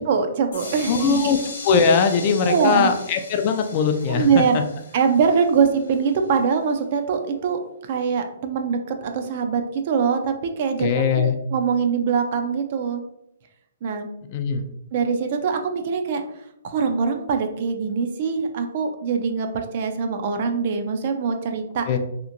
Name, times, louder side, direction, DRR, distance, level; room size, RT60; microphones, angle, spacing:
voice 1, 0.1-1.3 2.5-2.9 4.1-4.6 4.9-7.6 7.9-13.0 13.8-14.1 14.9-16.2 16.6-21.8, right 6 dB, 50° right, 5 dB, 0.4 m, -23 dB
sound 1, 0.5-6.3, left 3 dB, 80° left, 0.6 m, -38 dB
voice 2, 0.9-1.4 1.6-4.6 10.8-11.3 14.3-14.6 21.9-22.0, left 6 dB, 40° left, 6 dB, 0.3 m, -20 dB
2.8 x 2.5 x 2.5 m, 0.79 s
hypercardioid pair, 145°, 0 cm